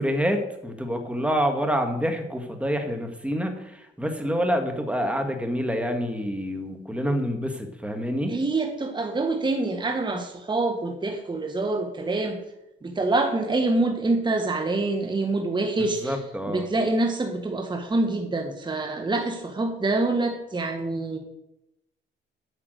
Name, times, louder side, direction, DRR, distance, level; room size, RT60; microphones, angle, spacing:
voice 1, 0.0-8.4 15.8-16.7, equal, 5° right, 5 dB, 1.9 m, -27 dB
voice 2, 8.3-12.4 12.8-16.1 16.5-21.2, right 2 dB, 25° right, 4 dB, 1.5 m, -26 dB
9.3 x 5.9 x 7.9 m, 0.86 s
cardioid pair, 90°, 20 cm